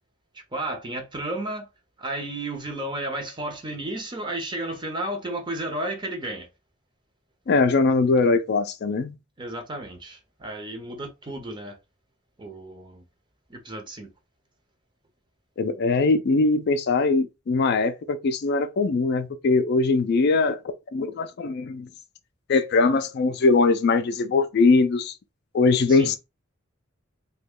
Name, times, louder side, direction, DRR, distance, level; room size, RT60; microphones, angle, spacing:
voice 1, 0.5-1.7 2.0-6.5 9.4-11.8 12.4-13.0 13.5-14.1 25.9-26.2, right 1 dB, 25° right, 0.7 m, -33 dB
voice 2, 7.5-9.2 15.6-20.6 20.9-21.9 22.5-25.1 25.5-26.2, left 3 dB, 55° left, 0.4 m, -21 dB
3.0 x 2.2 x 3.6 m
head